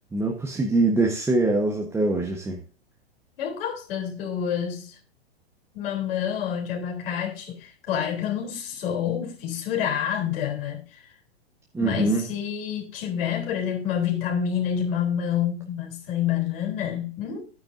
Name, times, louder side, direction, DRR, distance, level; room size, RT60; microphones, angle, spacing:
voice 1, 0.1-2.6 11.7-12.2, right 2 dB, 10° right, 1.3 m, -23 dB
voice 2, 3.4-5.0 5.7-11.0 11.8-17.4, left 9 dB, 60° left, 3.9 m, -28 dB
11.5 x 9.2 x 2.8 m
hypercardioid pair, 120°, 31 cm